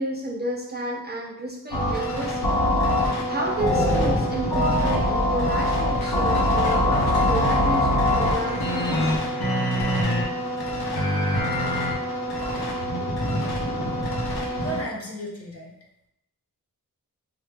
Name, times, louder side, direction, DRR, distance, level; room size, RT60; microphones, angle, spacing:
voice 1, 0.0-2.5 3.3-9.2, right 2 dB, 30° right, -1 dB, 0.4 m, -31 dB
sound 1, 1.7-14.8, left 1 dB, 80° left, 0.8 m, -23 dB
voice 2, 14.6-15.7, right 1 dB, 40° left, -1 dB, 0.7 m, -34 dB
3.2 x 2.1 x 3.2 m, 0.83 s
wide cardioid pair, 50°, 37 cm